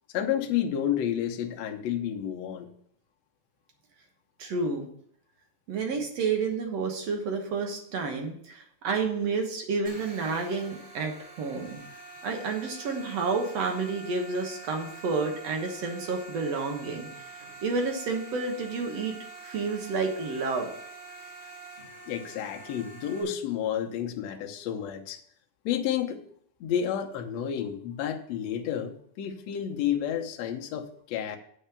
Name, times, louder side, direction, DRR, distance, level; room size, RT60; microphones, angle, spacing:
voice 1, 0.1-2.7 22.1-25.2 25.6-26.2 26.6-31.4, left 9 dB, 75° left, 4 dB, 1.6 m, -30 dB
voice 2, 4.4-4.9 5.7-11.8 12.2-19.2 19.4-20.7, right 4 dB, 60° right, 3 dB, 1.8 m, -30 dB
sound 1, 9.8-23.2, right 3 dB, 35° right, 5.3 m, -46 dB
7.9 x 5.5 x 6.8 m, 0.65 s
omnidirectional pair, 4.2 m